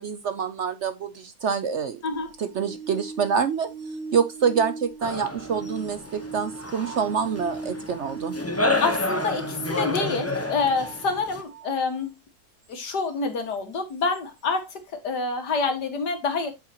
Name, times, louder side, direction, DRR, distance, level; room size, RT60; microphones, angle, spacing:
voice 1, 0.0-2.0 2.4-3.7 4.1-8.3, right 6 dB, 55° right, 0.8 m, -26 dB
sound 1, 2.1-11.8 14.1-14.2, right 3 dB, 75° right, 3.4 m, -39 dB
sound 2, 5.0-11.4, left 2 dB, 10° left, 0.7 m, -30 dB
voice 2, 8.8-12.1 12.7-16.5, left 4 dB, 85° left, 2.4 m, -27 dB
8.4 x 7.6 x 2.9 m
omnidirectional pair, 1.7 m